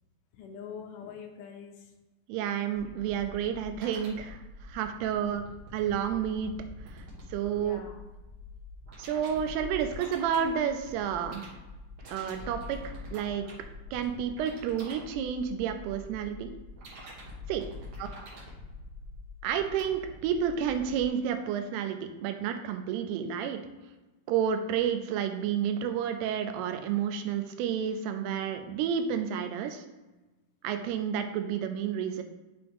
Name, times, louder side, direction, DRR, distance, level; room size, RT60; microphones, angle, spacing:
voice 1, 0.3-1.9 7.6-8.0, left 6 dB, 85° left, 2 dB, 1.8 m, -44 dB
voice 2, 2.3-4.4 4.7-5.4 5.7-6.5 7.0-7.1 7.3-7.8 9.0-11.4 12.1-13.5 13.9-16.5 17.5-17.6 19.4-23.6 24.3-29.8 30.6-32.2, right 8 dB, 90° right, 7 dB, 2.7 m, -30 dB
sound 1, 2.7-21.1, left 1 dB, 55° right, 1.8 m, -46 dB
6.1 x 3.4 x 4.7 m, 1.1 s
omnidirectional pair, 4.6 m